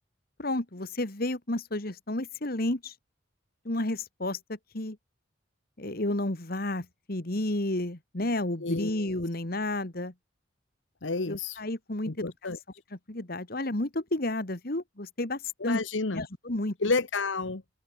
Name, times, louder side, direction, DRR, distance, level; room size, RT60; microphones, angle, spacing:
voice 1, 0.4-2.9 3.6-5.0 5.8-10.1 11.3-12.3 13.1-15.8 16.1-16.8, left 1 dB, 50° left, 2.0 m, -31 dB
voice 2, 8.6-9.0 11.0-11.6 12.1-12.6 15.6-16.2 16.8-17.7, left 3 dB, 80° left, 1.3 m, -30 dB
open air
head